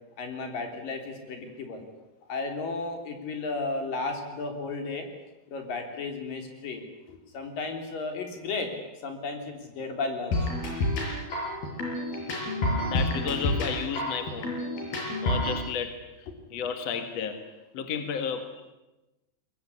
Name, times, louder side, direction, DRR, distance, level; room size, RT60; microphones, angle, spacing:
voice 1, 0.2-1.8 2.3-5.1 5.5-6.8 7.1-8.7 9.0-10.4 18.2-18.3, left 3 dB, 70° left, 4 dB, 5.2 m, -34 dB
sound 1, 10.3-15.6, left 1 dB, 90° left, 7.5 m, -29 dB
voice 2, 12.9-14.6 15.2-17.5 17.7-18.5, left 7 dB, 50° left, 8 dB, 2.6 m, -33 dB
22.5 x 21.5 x 9.8 m, 1.0 s
omnidirectional pair, 4.2 m